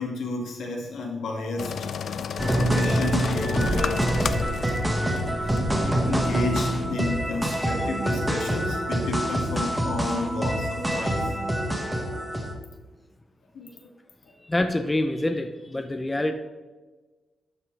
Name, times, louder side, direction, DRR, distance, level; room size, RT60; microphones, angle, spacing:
voice 1, 0.0-4.2 5.8-11.4 13.5-13.9, left 2 dB, 85° left, 0 dB, 2.0 m, -32 dB
sound 1, 1.6-4.8 5.2-5.3 5.5-5.6, left 7 dB, 60° left, 0.5 m, -31 dB
sound 2, 2.4-12.5, equal, 10° right, 1.4 m, -26 dB
voice 2, 14.4-16.3, left 1 dB, 15° left, 7 dB, 0.6 m, -26 dB
12.0 x 5.5 x 4.6 m, 1.2 s
wide cardioid pair, 125°, 0 cm